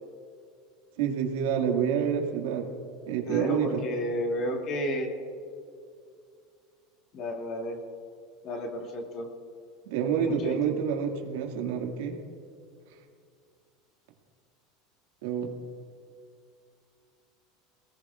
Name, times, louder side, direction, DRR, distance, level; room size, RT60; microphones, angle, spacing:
voice 1, 1.0-2.7 3.1-3.8 9.9-12.2 15.2-15.5, right 7 dB, 80° right, 2 dB, 2.0 m, -28 dB
voice 2, 3.3-5.1 7.1-7.8 8.4-9.3 10.0-10.7, equal, 45° left, 1 dB, 2.5 m, -32 dB
22.5 x 18.5 x 2.5 m, 2.3 s
supercardioid pair, 140°, 0 cm